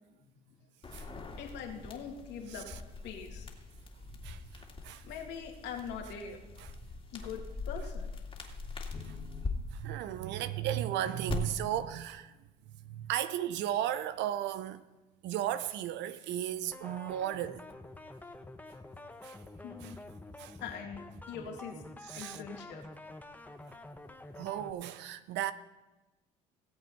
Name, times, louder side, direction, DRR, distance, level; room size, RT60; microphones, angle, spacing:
voice 1, 0.1-0.6 1.4-2.7 3.0-3.5 4.1-4.2 5.0-6.4 7.1-8.1 19.6-20.0 20.6-21.8 22.1-22.9, left 7 dB, 60° left, 2.3 m, -43 dB
sound 1, 0.8-9.5 11.3-11.4, left 4 dB, 25° left, 2.4 m, -43 dB
voice 2, 4.2-5.1 6.6-6.7 8.4-9.2 9.7-12.3 12.8-14.8 15.2-17.6 19.2-19.9 20.4-20.6 22.1-22.4 23.7-23.8 24.3-25.5, right 11 dB, 60° right, 0.7 m, -35 dB
sound 2, 16.7-24.7, left 2 dB, 10° left, 1.0 m, -48 dB
18.0 x 7.8 x 4.2 m
hypercardioid pair, 70°, 20 cm